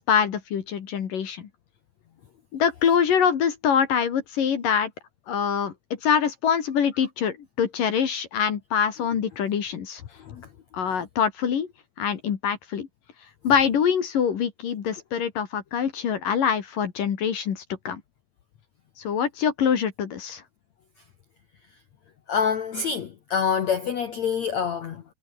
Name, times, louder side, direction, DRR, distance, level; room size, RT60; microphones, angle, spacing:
voice 1, 0.0-1.5 2.5-4.9 5.3-5.7 6.0-10.0 10.7-11.7 12.0-12.9 13.4-18.0 19.0-20.4, left 7 dB, 55° left, 3.5 m, -24 dB
voice 2, 22.3-25.0, left 6 dB, 75° left, 1.6 m, -26 dB
omnidirectional pair, 5.3 m